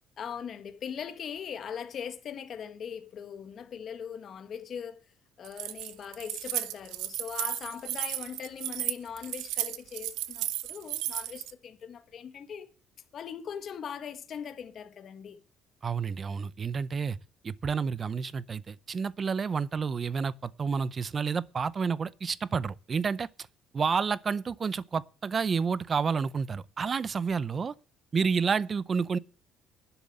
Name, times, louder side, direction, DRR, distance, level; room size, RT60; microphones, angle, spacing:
voice 1, 0.2-5.0 5.4-12.7 13.1-15.4, left 7 dB, 40° left, 1.6 m, -40 dB
Keys jangling, 5.4-11.5, right 15 dB, 90° right, 0.8 m, -34 dB
voice 2, 15.8-17.2 17.4-23.3 23.7-27.7 28.1-29.2, right 5 dB, 25° right, 0.6 m, -30 dB
11.5 x 7.0 x 7.7 m
cardioid pair, 155°, 0 cm